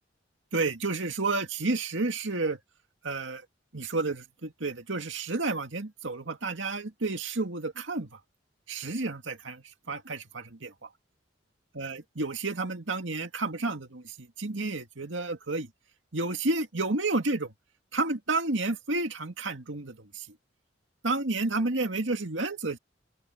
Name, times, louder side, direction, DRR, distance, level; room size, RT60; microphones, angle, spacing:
voice 1, 0.5-2.6 3.0-3.4 3.7-8.2 8.7-10.9 11.8-15.7 16.1-17.5 17.9-20.3 21.0-22.8, right 3 dB, 80° right, 2.2 m, -31 dB
open air
head